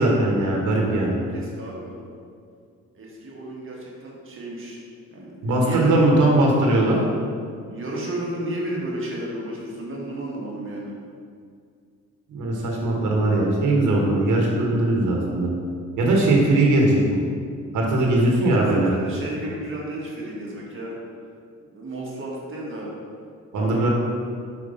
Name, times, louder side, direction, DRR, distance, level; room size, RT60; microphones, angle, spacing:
voice 1, 0.0-1.2 5.4-7.0 12.3-15.5 16.0-17.2 17.7-18.9 23.5-23.9, right 2 dB, 75° right, -1 dB, 1.4 m, -20 dB
voice 2, 1.3-1.9 2.9-4.8 5.1-6.1 7.7-10.9 16.5-16.6 18.2-21.0 21.7-22.9 23.5-23.9, right 1 dB, 45° right, -3 dB, 1.7 m, -33 dB
4.9 x 4.6 x 5.7 m, 2.2 s
cardioid pair, 90°, 30 cm